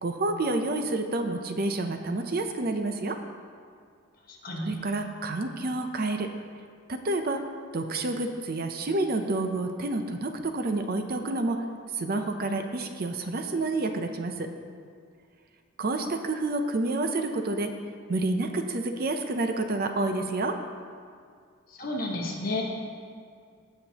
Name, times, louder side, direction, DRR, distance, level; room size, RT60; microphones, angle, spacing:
voice 1, 0.0-3.2 4.6-6.3 6.9-7.5 7.7-11.6 11.9-14.5 15.8-17.7 18.1-20.6, right 2 dB, 45° right, 6 dB, 0.6 m, -29 dB
voice 2, 21.8-22.6, left 2 dB, 45° left, -2 dB, 1.5 m, -31 dB
16.5 x 5.9 x 2.9 m, 2.1 s
head